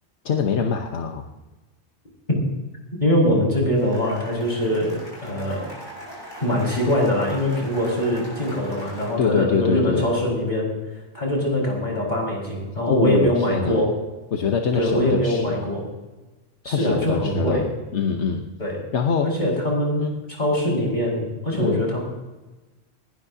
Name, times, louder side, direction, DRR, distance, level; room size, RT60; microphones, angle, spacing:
voice 1, 0.2-1.3 9.2-10.1 12.9-13.8 14.3-15.6 16.6-17.6 17.9-18.4 18.9-19.3 20.0-20.1 21.6-21.8, left 6 dB, 80° left, 3 dB, 1.3 m, -24 dB
voice 2, 3.0-5.7 6.4-10.7 11.1-13.9 14.7-15.9 16.6-17.7 18.6-18.8 19.2-22.0, equal, 40° left, -2 dB, 5.6 m, -23 dB
Cheering / Applause, 3.7-9.1, equal, 20° left, 6.8 m, -40 dB
20.0 x 18.0 x 2.8 m, 1.2 s
omnidirectional pair, 1.2 m